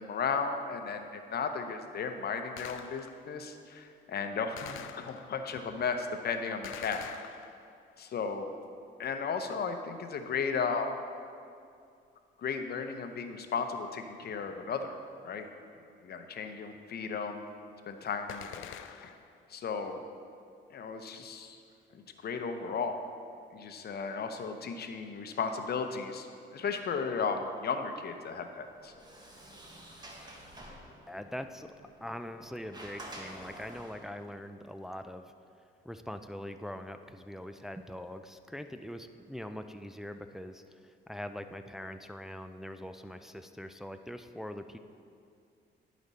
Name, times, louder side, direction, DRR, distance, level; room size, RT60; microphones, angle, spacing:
voice 1, 0.0-7.0 8.0-8.5 9.0-10.9 12.4-14.9 15.2-15.5 16.0-17.4 17.9-19.1 19.5-20.0 20.7-21.6 21.9-22.9 23.5-26.3 26.5-28.9, left 5 dB, 55° left, 6 dB, 0.7 m, -35 dB
Gunshot gunfire, 2.6-3.4 4.6-5.5 6.6-7.9 18.3-19.4, left 10 dB, 85° left, 0.4 m, -46 dB
Sliding door, 28.6-34.2, right 1 dB, 20° right, 1.3 m, -49 dB
voice 2, 31.1-31.7 32.0-35.2 35.8-44.8, left 1 dB, ahead, 8 dB, 0.3 m, -42 dB
10.5 x 5.1 x 4.1 m, 2.4 s
cardioid pair, 90°, 20 cm